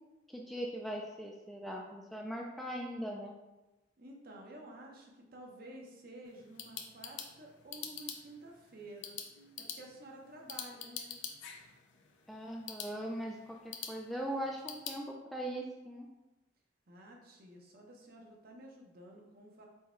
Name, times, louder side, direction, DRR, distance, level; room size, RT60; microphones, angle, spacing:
voice 1, 0.3-3.3 12.3-16.1, equal, ahead, -1 dB, 0.3 m, -40 dB
voice 2, 4.0-9.2 9.6-11.2 16.9-19.7, right 1 dB, 50° right, 0 dB, 0.7 m, -51 dB
sound 1, 6.2-15.0, left 7 dB, 75° left, 0.5 m, -46 dB
4.5 x 2.3 x 4.3 m, 1.0 s
head